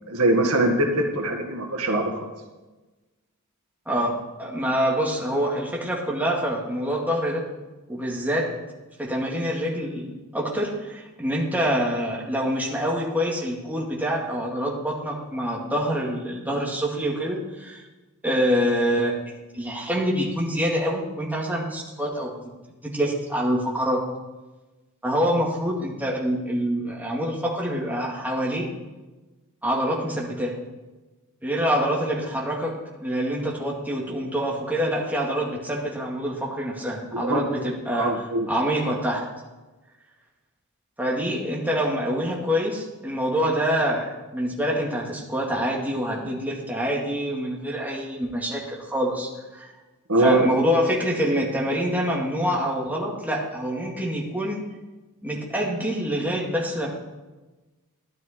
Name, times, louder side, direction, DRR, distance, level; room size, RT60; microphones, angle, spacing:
voice 1, 0.1-2.3 37.1-37.5 37.9-38.5 50.1-50.5, right 2 dB, 70° right, 2 dB, 1.7 m, -22 dB
voice 2, 3.9-7.5 7.9-8.5 9.0-17.8 18.2-19.1 19.5-22.3 22.8-24.0 25.0-28.6 29.6-30.5 31.4-32.7 33.0-38.2 38.5-39.3 41.0-49.7 50.2-54.6 55.2-56.9, equal, 10° right, -3 dB, 2.3 m, -26 dB
13.0 x 11.5 x 4.5 m, 1.1 s
head